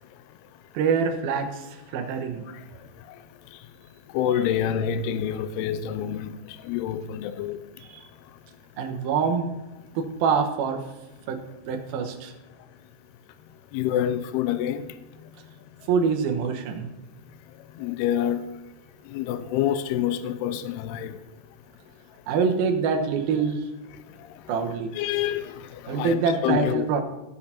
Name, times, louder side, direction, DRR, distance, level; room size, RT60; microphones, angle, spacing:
voice 1, 0.7-2.5 7.9-8.1 8.8-9.5 10.0-10.8 11.3-11.4 11.7-12.3 15.9-16.9 22.3-23.6 24.5-24.9 25.9-27.0, right 5 dB, 70° right, 2.6 m, -25 dB
voice 2, 4.1-6.3 6.6-7.6 13.7-14.9 17.8-18.4 19.1-21.1 24.9-25.5 25.8-26.9, left 10 dB, 85° left, 2.4 m, -27 dB
15.5 x 6.6 x 4.3 m
omnidirectional pair, 5.1 m